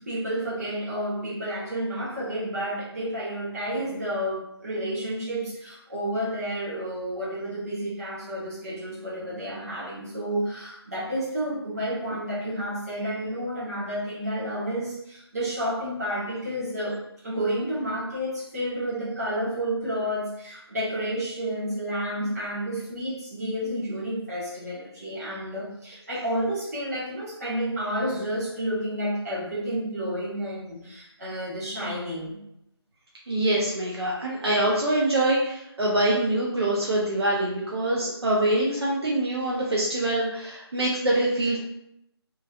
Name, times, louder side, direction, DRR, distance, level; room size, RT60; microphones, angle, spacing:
voice 1, 0.0-17.0 17.2-32.4, equal, 35° right, -7 dB, 1.3 m, -30 dB
voice 2, 33.3-41.6, right 1 dB, 70° right, -5 dB, 0.8 m, -24 dB
3.1 x 2.7 x 2.4 m, 0.78 s
figure-of-eight pair, 165°, 14 cm